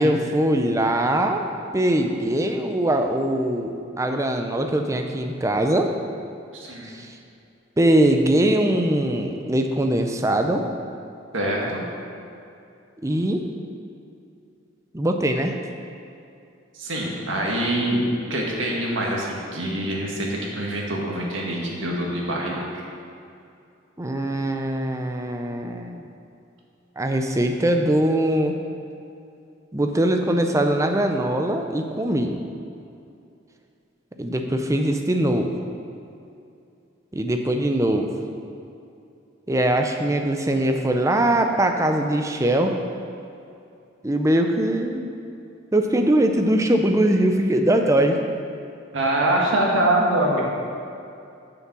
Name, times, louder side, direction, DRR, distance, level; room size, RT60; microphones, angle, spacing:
voice 1, 0.0-1.4 1.7-5.9 6.9-7.1 7.8-10.7 13.0-13.5 14.9-15.6 24.0-26.0 27.0-28.5 29.7-32.4 34.2-35.5 37.1-38.1 39.5-42.8 44.0-45.0 45.7-48.2, right 1 dB, 15° right, 4 dB, 0.5 m, -21 dB
voice 2, 6.5-6.9 11.3-11.8 16.7-18.0 18.3-22.8 48.9-50.4, right 1 dB, 80° right, -2 dB, 1.7 m, -24 dB
7.1 x 6.8 x 6.1 m, 2.6 s
head